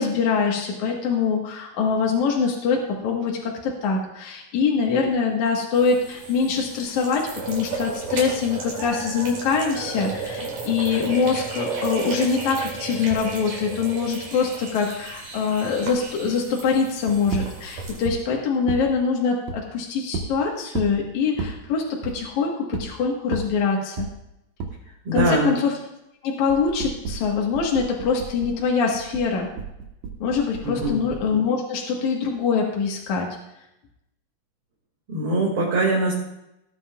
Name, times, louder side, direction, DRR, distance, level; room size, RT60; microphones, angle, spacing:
voice 1, 0.0-24.1 25.1-25.7 26.2-29.5 30.2-33.3, left 5 dB, 70° left, -1 dB, 2.9 m, -24 dB
sound 1, 5.7-18.1, right 3 dB, 85° right, 4.2 m, -33 dB
sound 2, 17.3-17.5 18.1-18.2 18.7-18.9 19.5-19.6 20.1-20.3 20.7-21.0 21.4-21.6 22.0-22.2 22.7-22.9 23.3-23.5 24.0-24.1 24.6-24.7 25.2-25.3 26.5-28.6 28.9-31.3, right 4 dB, 65° right, 2.4 m, -31 dB
voice 2, 25.0-25.5 30.6-31.0 35.1-36.1, right 1 dB, 45° right, -5 dB, 2.9 m, -22 dB
17.5 x 9.7 x 2.4 m, 0.85 s
omnidirectional pair, 3.6 m